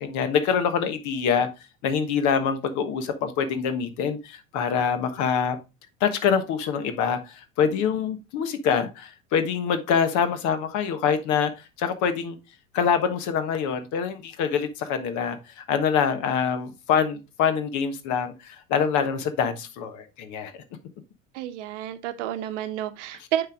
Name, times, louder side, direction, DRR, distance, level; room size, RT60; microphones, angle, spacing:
voice 1, 0.0-1.5 1.8-5.6 6.0-11.5 11.8-12.4 12.7-20.6, left 7 dB, 50° left, 1.3 m, -25 dB
voice 2, 21.3-23.5, right 11 dB, 65° right, 0.9 m, -30 dB
9.3 x 3.5 x 3.5 m
hypercardioid pair, 80°, 39 cm